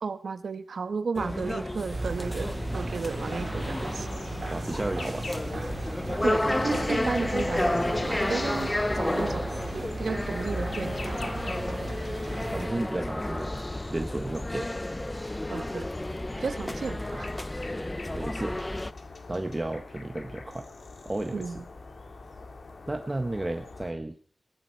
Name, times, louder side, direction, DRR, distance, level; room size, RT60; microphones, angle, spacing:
voice 1, 0.0-4.1 6.2-9.5 10.0-11.3 15.5-15.9 16.4-17.3 21.3-21.6, right 4 dB, 85° right, 10 dB, 1.3 m, -33 dB
sound 1, 1.2-18.9, left 1 dB, 20° left, 0.6 m, -31 dB
sound 2, 1.9-12.7, right 3 dB, 60° right, 3.9 m, -37 dB
sound 3, 4.0-23.9, left 3 dB, 70° left, 2.8 m, -44 dB
voice 2, 4.5-5.3 12.2-13.6 13.9-14.7 17.1-17.2 18.1-18.6 19.3-20.7 21.0-21.5 22.9-24.2, right 2 dB, 25° right, 6 dB, 1.3 m, -33 dB
19.5 x 12.0 x 4.6 m, 0.43 s
wide cardioid pair, 75°, 0 cm